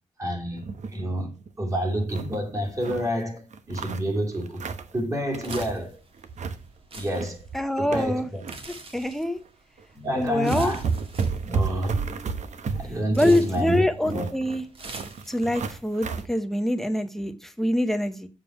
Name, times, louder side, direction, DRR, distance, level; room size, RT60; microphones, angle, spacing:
voice 1, 0.2-4.7 4.9-6.0 6.9-7.5 7.8-8.5 9.9-10.8 11.4-14.3, equal, 25° right, 2.5 m, -29 dB
sound 1, 0.6-1.0 1.4-1.5 1.8-3.1 3.5-5.0 5.3-5.9 6.2-6.6 6.9-8.6 9.0-9.1 9.8-9.9 10.2-16.3, right 5 dB, 70° right, 1.0 m, -32 dB
sound 2, 5.4-15.7, right 3 dB, 45° right, 1.9 m, -46 dB
voice 2, 7.5-8.3 8.9-9.4 10.2-10.7 13.2-14.6 15.3-18.3, left 1 dB, ahead, 0.8 m, -25 dB
7.5 x 7.3 x 4.3 m
wide cardioid pair, 170°, 13 cm